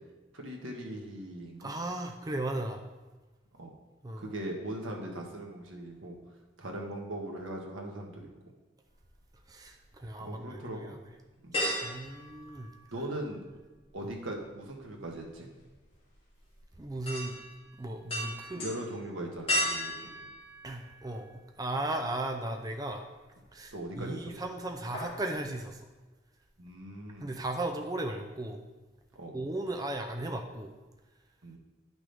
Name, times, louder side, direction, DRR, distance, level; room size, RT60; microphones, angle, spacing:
voice 1, 0.3-1.7 3.6-3.7 4.2-6.2 6.6-8.3 10.2-10.9 11.4-11.6 12.9-13.4 13.9-15.5 18.5-20.1 23.7-24.2 26.6-27.4 29.1-29.3 31.4-31.6, right 1 dB, 85° right, 1 dB, 1.5 m, -39 dB
voice 2, 1.6-2.8 4.0-4.3 9.5-11.0 11.8-12.7 14.0-14.1 16.8-17.4 17.8-18.7 20.6-21.3 21.6-23.0 23.5-25.9 27.2-28.6 29.3-30.7, right 1 dB, 20° right, 4 dB, 0.5 m, -36 dB
sound 1, 8.9-9.9 10.3-10.4 11.5-13.3 13.5-21.4 21.9-22.0 23.4-24.0 24.3-24.5 24.7-25.3 25.6-25.7, equal, 30° left, 2.4 m, -36 dB
11.0 x 6.1 x 3.4 m, 1.2 s
head